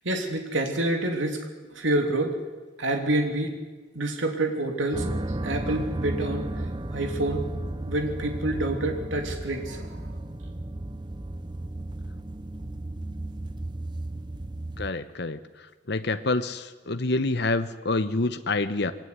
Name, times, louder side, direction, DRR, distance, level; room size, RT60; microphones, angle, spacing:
voice 1, 0.0-1.4 1.7-2.4 2.8-3.6 3.9-5.1 5.4-6.5 6.9-7.4 7.9-10.1, right 1 dB, 80° right, 4 dB, 3.1 m, -27 dB
sound 1, 4.9-14.9, right 1 dB, 25° right, 0.7 m, -34 dB
voice 2, 14.8-15.4 15.9-18.9, left 2 dB, 60° left, 10 dB, 1.0 m, -27 dB
23.0 x 18.0 x 9.7 m, 1.3 s
head